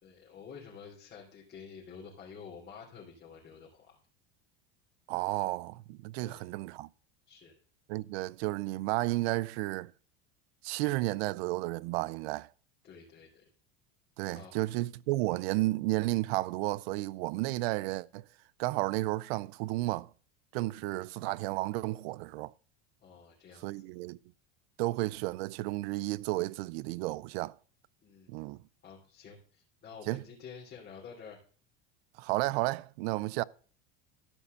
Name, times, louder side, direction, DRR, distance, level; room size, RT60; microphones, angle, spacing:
voice 1, 0.0-4.0 6.2-6.5 7.3-7.6 12.8-13.5 14.3-14.5 20.6-20.9 23.0-23.8 28.0-28.3 28.8-31.4, left 6 dB, 35° left, 3.3 m, -50 dB
voice 2, 5.1-6.9 7.9-9.9 10.6-12.5 14.2-18.2 18.6-20.1 20.5-22.5 23.6-24.2 24.8-27.6 28.3-28.6 30.1-30.2 32.2-33.4, right 19 dB, 75° right, 0.5 m, -32 dB
13.0 x 5.4 x 6.7 m
supercardioid pair, 125°, 31 cm